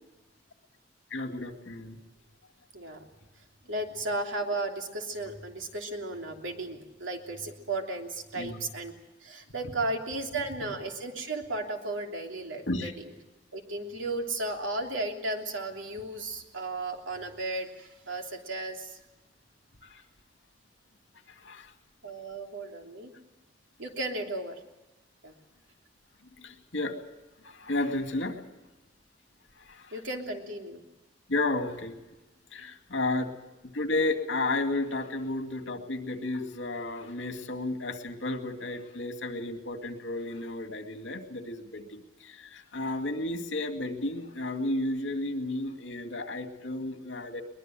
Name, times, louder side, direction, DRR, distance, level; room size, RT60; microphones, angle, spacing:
voice 1, 1.1-2.0 8.3-8.6 12.7-12.9 19.8-20.0 21.4-21.7 26.4-27.0 27.4-28.4 29.7-29.9 31.3-31.9 32.5-33.3 33.7-47.4, left 2 dB, 75° left, 6 dB, 2.3 m, -32 dB
voice 2, 2.7-3.1 3.7-8.9 9.2-13.1 13.5-19.0 22.0-23.1 23.8-24.6 25.2-25.3 29.9-30.8, right 2 dB, 90° right, 2 dB, 3.1 m, -34 dB
22.5 x 21.0 x 7.7 m, 1.0 s
head